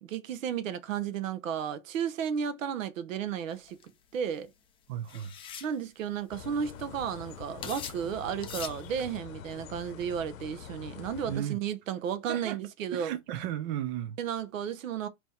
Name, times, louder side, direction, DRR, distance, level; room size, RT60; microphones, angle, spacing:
voice 1, 0.0-3.8 4.1-4.5 5.6-13.1 14.2-15.1, right 8 dB, 70° right, 0.9 m, -33 dB
sound 1, 3.7-3.9 5.1-5.7 6.4-6.5 6.6-7.0 7.6-8.0 8.4-8.8, left 8 dB, 15° left, 0.4 m, -41 dB
voice 2, 4.9-5.3 11.3-11.6 12.3-12.6 12.9-14.2, right 11 dB, 40° right, 0.6 m, -34 dB
sound 2, 6.3-11.4, left 8 dB, 70° left, 0.8 m, -45 dB
3.7 x 3.0 x 4.2 m
hypercardioid pair, 115°, 41 cm